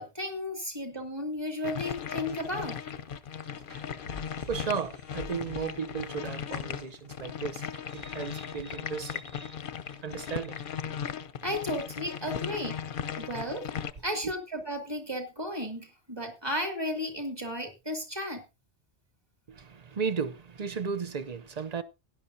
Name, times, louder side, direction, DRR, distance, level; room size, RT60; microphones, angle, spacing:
voice 1, 0.0-2.8 11.4-12.8 13.2-13.7 14.0-18.4, left 1 dB, 20° right, 2.6 m, -34 dB
sound 1, 1.5-9.0, left 2 dB, 80° right, 4.4 m, -51 dB
sound 2, 1.6-13.9, left 8 dB, 55° left, 0.8 m, -37 dB
voice 2, 4.5-9.6 10.0-10.7 14.2-14.3 19.5-21.8, right 6 dB, 40° right, 0.7 m, -35 dB
17.0 x 10.5 x 2.7 m
omnidirectional pair, 1.2 m